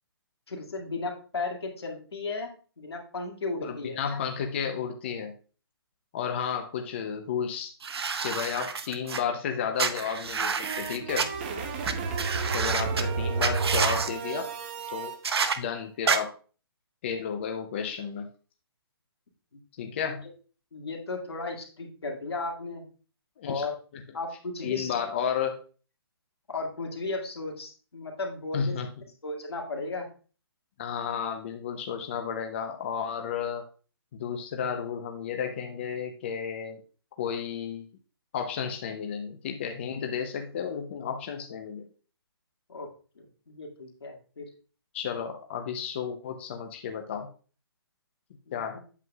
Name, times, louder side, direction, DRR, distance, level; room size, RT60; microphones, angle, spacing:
voice 1, 0.5-4.2 19.5-19.6 20.0-20.1 20.7-22.8 23.4-23.7 24.1-24.9 26.5-28.8 29.2-30.1 42.7-42.9 43.2-44.5 48.5-48.8, left 3 dB, 85° left, 1 dB, 2.1 m, -35 dB
voice 2, 3.6-5.3 6.1-7.7 8.2-11.3 12.5-14.5 14.9-15.1 15.6-16.3 17.0-18.3 19.8-20.2 23.4-23.7 23.9-24.0 24.6-25.6 28.5-28.9 30.8-33.6 34.1-36.8 37.2-37.9 38.3-41.9 44.9-47.3 48.5-48.8, left 7 dB, 30° left, 4 dB, 0.6 m, -32 dB
sound 1, 7.8-9.2 9.8-11.3 11.8-11.9 12.2-13.0 13.4-14.1 15.2-15.6 16.1-16.2, right 5 dB, 75° right, 0.8 m, -28 dB
sound 2, 10.2-15.2, right 4 dB, 25° right, 0.8 m, -31 dB
8.2 x 7.5 x 2.3 m, 0.38 s
hypercardioid pair, 165°, 13 cm